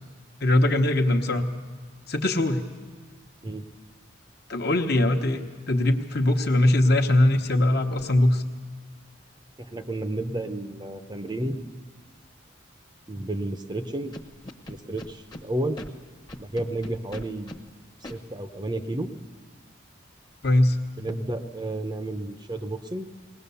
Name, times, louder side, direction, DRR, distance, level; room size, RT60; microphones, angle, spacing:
voice 1, 0.4-1.5 2.1-2.6 4.5-5.4 5.7-8.4 20.4-20.8, left 1 dB, 50° left, 4 dB, 1.1 m, -21 dB
voice 2, 9.6-11.6 13.1-14.1 14.7-15.8 16.4-17.6 18.1-19.1 21.0-23.1, right 1 dB, 20° right, 8 dB, 0.7 m, -31 dB
Scratching (performance technique), 14.1-15.4 15.8-15.9 16.3-17.6 18.0-18.2, left 1 dB, 20° left, 1.0 m, -39 dB
21.0 x 18.5 x 7.0 m, 1.4 s
head